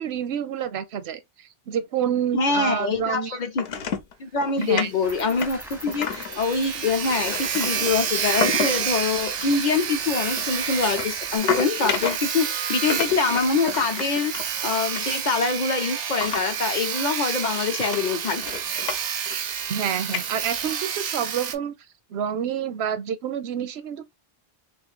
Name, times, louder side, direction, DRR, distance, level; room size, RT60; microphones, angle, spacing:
voice 1, 0.0-3.4 4.6-4.9 19.7-21.7 22.1-24.1, right 8 dB, 85° right, 0.9 m, -28 dB
voice 2, 2.3-3.8 4.2-14.4 14.6-18.4, left 4 dB, 50° left, 0.7 m, -25 dB
sound 1, 3.6-4.1 4.4-4.9 5.3-6.4 6.8-8.9 9.2-9.6 10.4-12.4 12.9-15.7 16.2-16.7 17.0-17.1 17.5-17.6 17.9-19.0 19.3-19.7 20.1-20.7, left 6 dB, 80° left, 0.9 m, -31 dB
Sawing, 4.7-4.8 5.1-5.2 5.6-5.7 5.8-21.6, right 8 dB, 55° right, 0.5 m, -29 dB
Cricket, 5.0-11.4, equal, 5° right, 0.5 m, -40 dB
3.1 x 2.5 x 3.7 m
omnidirectional pair, 1.0 m